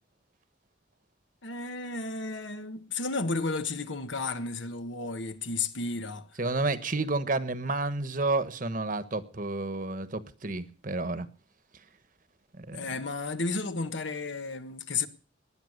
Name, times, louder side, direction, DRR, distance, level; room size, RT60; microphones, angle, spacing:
voice 1, 1.4-6.3 12.7-15.1, left 3 dB, 75° left, 1.5 m, -33 dB
voice 2, 6.4-11.3 12.5-12.9, right 2 dB, 45° right, 1.3 m, -30 dB
19.5 x 10.0 x 6.6 m
head